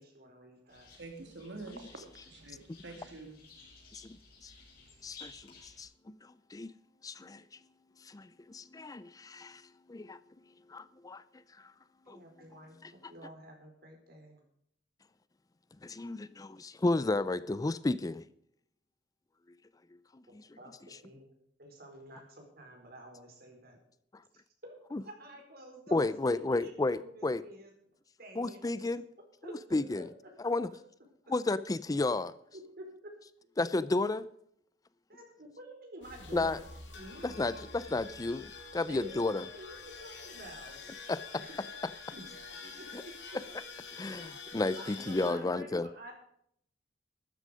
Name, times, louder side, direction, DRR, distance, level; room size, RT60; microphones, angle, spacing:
voice 1, 0.0-0.9 12.0-14.4 20.3-21.3 21.6-23.8 24.6-27.7 28.2-28.9 29.4-30.6 32.5-33.1 35.1-36.7 36.9-37.4 38.9-40.9 41.3-41.6 42.1-42.2 42.8-43.4 44.8-46.1, right 1 dB, 55° right, 3 dB, 4.4 m, -50 dB
sound 1, 0.7-5.8, left 4 dB, 55° left, 5.4 m, -56 dB
voice 2, 1.0-3.4, right 3 dB, 75° right, 5 dB, 2.8 m, -47 dB
voice 3, 5.0-5.9 6.5-6.7 7.0-7.4 8.0-9.6 9.9-10.2 10.7-11.2 12.1-12.2 12.8-12.9 15.8-18.2 20.3-20.5 24.9-25.0 25.9-27.4 28.4-29.0 29.7-30.0 30.4-30.7 31.3-32.3 33.6-34.3 36.3-36.6 37.2-39.4 41.1-41.2 42.9-43.0 43.9-45.9, left 2 dB, 20° left, 16 dB, 0.4 m, -32 dB
sound 2, 36.0-45.3, left 4 dB, 80° left, 3.4 m, -47 dB
13.0 x 9.9 x 5.0 m, 0.68 s
head